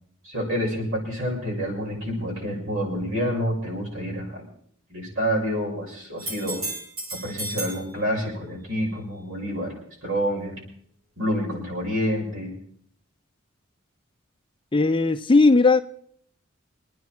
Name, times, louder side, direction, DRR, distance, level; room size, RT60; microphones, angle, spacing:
voice 1, 0.2-4.4 4.9-6.6 7.2-9.7 10.0-10.6 11.2-12.5, equal, 65° right, -2 dB, 6.5 m, -28 dB
sound 1, 6.2-7.8 11.5-11.6, right 1 dB, 90° right, 7.4 m, -33 dB
voice 2, 14.7-15.8, left 3 dB, 25° left, 9 dB, 0.5 m, -17 dB
25.0 x 9.5 x 4.6 m, 0.62 s
head